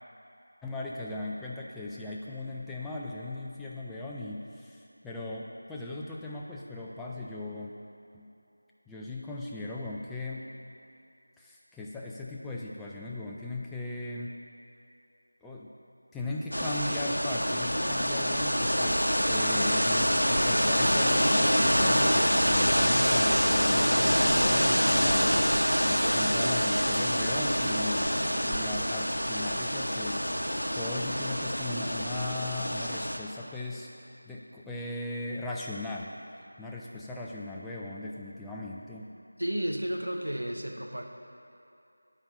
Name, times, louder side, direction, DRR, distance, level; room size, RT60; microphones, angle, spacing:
voice 1, 0.6-7.7 8.1-8.3 8.9-10.5 11.4-14.3 15.4-15.7 16.1-25.4 25.8-28.1 28.4-30.3 30.7-36.1 36.6-39.1, left 2 dB, 5° left, -5 dB, 0.3 m, -38 dB
sound 1, 16.5-33.2, equal, 85° left, 0.8 m, -26 dB
voice 2, 39.4-41.0, right 1 dB, 70° right, 2 dB, 0.8 m, -32 dB
10.5 x 4.2 x 3.9 m, 2.7 s
figure-of-eight pair, 170°, 0 cm